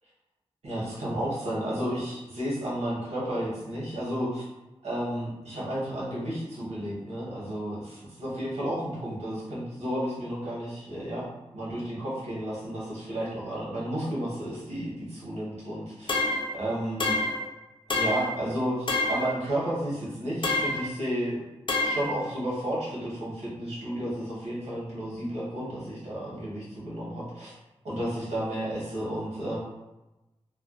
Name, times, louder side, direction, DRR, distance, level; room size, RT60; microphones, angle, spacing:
voice 1, 0.6-4.4 4.8-11.3 11.5-16.1 16.5-17.2 17.9-21.4 21.8-27.5 27.8-29.6, right 1 dB, 90° right, -8 dB, 1.0 m, -32 dB
sound 1, 16.1-16.5 17.0-17.5 17.9-18.4 18.9-19.3 20.4-20.9 21.7-22.1, left 2 dB, 50° left, 0.4 m, -27 dB
2.4 x 2.2 x 2.3 m, 1.0 s
cardioid pair, 40°, 11 cm